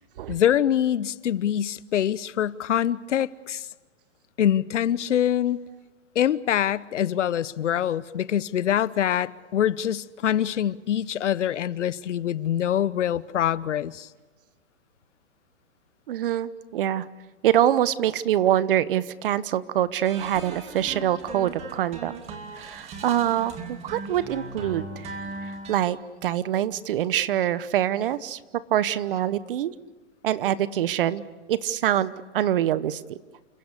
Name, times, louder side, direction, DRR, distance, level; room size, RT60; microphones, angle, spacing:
voice 1, 0.3-3.7 4.4-5.6 6.1-14.1, left 10 dB, 80° left, 1.0 m, -24 dB
voice 2, 16.1-17.1 17.4-22.1 22.6-25.1 25.7-28.4 28.7-29.7 30.2-31.2 31.5-33.2, right 11 dB, 50° right, 1.0 m, -25 dB
sound 1, 20.0-25.8, right 3 dB, 20° right, 2.7 m, -39 dB
29.0 x 16.0 x 8.3 m
hypercardioid pair, 155°, 35 cm